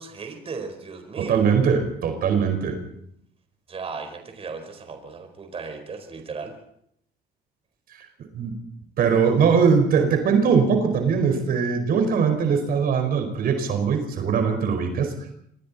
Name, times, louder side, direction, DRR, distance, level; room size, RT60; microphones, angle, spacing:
voice 1, 0.0-1.5 3.7-6.5, right 4 dB, 35° right, 6 dB, 4.5 m, -36 dB
voice 2, 1.2-2.8 8.3-8.6 9.0-15.1, right 6 dB, 60° right, 6 dB, 5.0 m, -21 dB
27.0 x 23.0 x 4.2 m, 0.71 s
cardioid pair, 110°, 17 cm